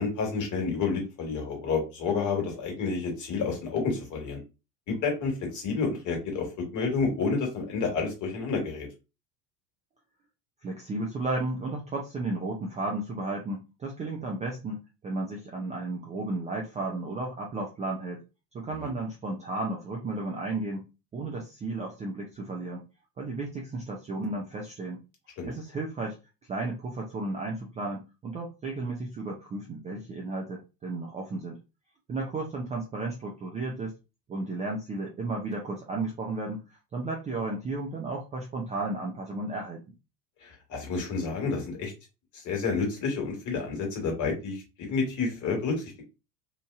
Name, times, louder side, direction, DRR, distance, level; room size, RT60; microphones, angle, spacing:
voice 1, 0.0-4.4 4.9-8.9 18.8-18.9 25.4-25.5 40.4-41.9 42.3-46.0, left 4 dB, 35° left, 2 dB, 1.4 m, -30 dB
voice 2, 10.6-18.2 18.5-20.8 21.1-22.8 23.2-25.0 25.4-26.2 26.5-31.6 32.1-33.9 34.3-36.6 36.9-39.8, right 2 dB, 15° right, -1 dB, 0.4 m, -33 dB
2.9 x 2.6 x 2.3 m, 0.28 s
figure-of-eight pair, 75°, 49 cm